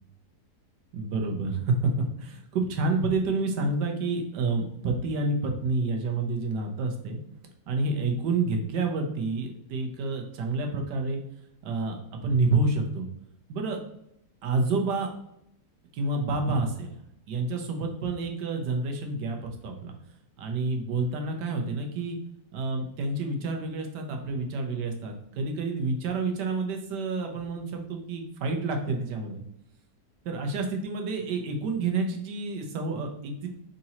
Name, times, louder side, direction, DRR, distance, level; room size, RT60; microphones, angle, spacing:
voice 1, 0.9-7.2 7.7-11.2 11.6-13.1 13.5-13.8 14.4-15.1 15.9-16.9 17.3-20.0 20.4-22.2 22.5-29.4 30.2-33.5, right 3 dB, 85° right, 3 dB, 1.4 m, -29 dB
4.1 x 3.8 x 2.8 m, 0.76 s
omnidirectional pair, 1.8 m